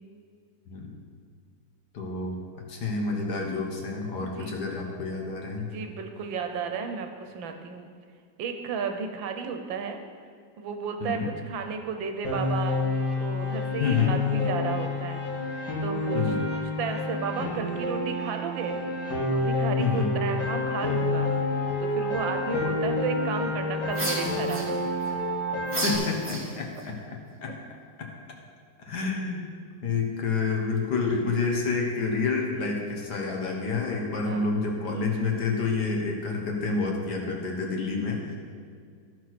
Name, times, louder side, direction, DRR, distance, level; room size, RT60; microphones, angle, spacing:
voice 1, 1.9-2.4 2.7-5.7 11.0-11.3 13.8-14.1 16.1-16.4 19.8-20.1 25.8-27.5 28.0-28.1 28.8-29.5 29.8-38.4, left 4 dB, 60° left, 0 dB, 1.8 m, -28 dB
voice 2, 4.2-4.5 5.6-7.9 8.4-10.0 10.6-12.8 13.2-18.8 19.3-21.3 21.8-24.8 34.2-34.6, right 5 dB, 90° right, 6 dB, 1.6 m, -33 dB
Piano, 12.2-26.0, left 2 dB, 85° left, 3.0 m, -28 dB
sound 1, 23.9-25.1 25.7-26.8, right 1 dB, 20° right, 1.8 m, -32 dB
13.5 x 4.6 x 6.0 m, 2.2 s
omnidirectional pair, 2.0 m